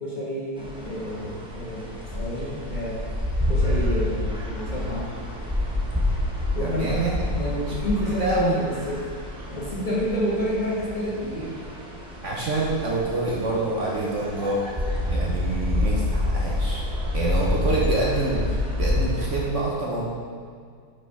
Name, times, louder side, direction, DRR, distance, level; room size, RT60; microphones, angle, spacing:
voice 1, 0.0-3.0 3.4-5.1 6.5-7.0 7.3-9.0 9.5-11.6, equal, 30° left, -7 dB, 1.5 m, -29 dB
sound 1, 0.6-19.5, left 1 dB, 5° right, 0.8 m, -28 dB
voice 2, 6.6-7.1 8.0-8.6 12.2-14.6 15.1-16.8 17.1-20.0, right 2 dB, 55° right, -3 dB, 1.0 m, -26 dB
5.8 x 5.0 x 4.7 m, 2.1 s
omnidirectional pair, 1.6 m